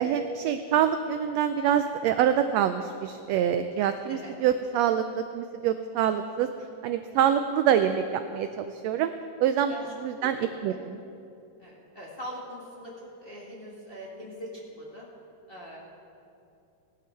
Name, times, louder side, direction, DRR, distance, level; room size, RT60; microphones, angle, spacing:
voice 1, 0.0-6.5 6.8-9.1 9.4-9.7 10.0-10.4 10.6-11.0, right 9 dB, 85° right, 9 dB, 1.5 m, -25 dB
voice 2, 10.2-10.8 11.6-15.0 15.5-15.8, equal, 25° left, -5 dB, 1.6 m, -42 dB
18.0 x 11.5 x 4.4 m, 2.6 s
omnidirectional pair, 3.4 m